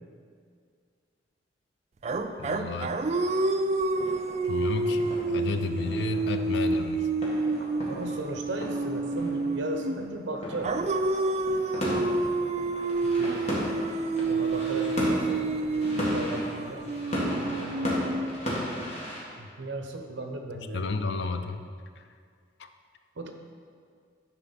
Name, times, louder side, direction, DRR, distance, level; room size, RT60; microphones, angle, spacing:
sound 1, 2.0-10.1 10.6-18.7, right 2 dB, 35° right, 0.3 m, -29 dB
voice 1, 2.4-3.0 4.4-7.1 20.7-21.7 22.6-22.7, left 3 dB, 65° left, 8 dB, 0.4 m, -32 dB
sound 2, 3.0-19.2, equal, 35° left, 1.6 m, -36 dB
voice 2, 7.6-10.7 13.0-13.5 14.3-17.9 19.4-20.9 23.2-23.3, right 1 dB, 75° right, 4 dB, 0.8 m, -37 dB
9.9 x 4.5 x 4.1 m, 2.1 s
head